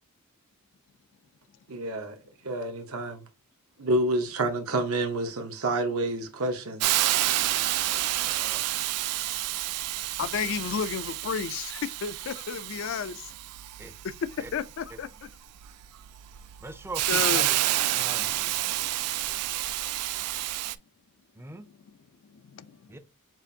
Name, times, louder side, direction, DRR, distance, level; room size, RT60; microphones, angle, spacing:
voice 1, 1.7-2.2 2.4-3.2 3.8-7.0, right 2 dB, 70° right, 1.0 m, -28 dB
Hiss, 6.8-20.7, right 14 dB, 90° right, 0.4 m, -29 dB
voice 2, 8.2-8.7 13.8-13.9 14.4-14.5 16.6-17.5 18.0-18.5 21.4-21.7 22.9-23.0, right 2 dB, 10° right, 0.4 m, -41 dB
voice 3, 10.2-13.3 14.0-15.3 17.1-17.5 21.9-22.0 22.2-22.9, left 6 dB, 60° left, 0.4 m, -32 dB
7.4 x 2.5 x 2.7 m
head